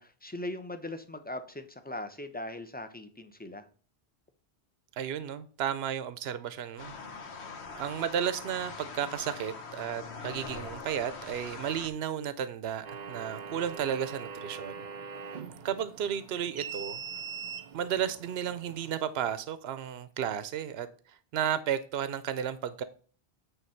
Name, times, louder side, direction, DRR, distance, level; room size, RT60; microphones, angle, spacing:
voice 1, 0.0-3.7, left 1 dB, 10° left, 0.8 m, -40 dB
voice 2, 5.0-6.9 7.7-14.9 15.6-17.0 17.7-20.9 21.3-22.8, right 9 dB, 75° right, 0.9 m, -33 dB
sound 1, 6.8-11.9, left 4 dB, 85° left, 1.4 m, -42 dB
sound 2, 12.8-19.2, right 6 dB, 50° right, 0.7 m, -42 dB
9.2 x 3.4 x 5.7 m
omnidirectional pair, 1.1 m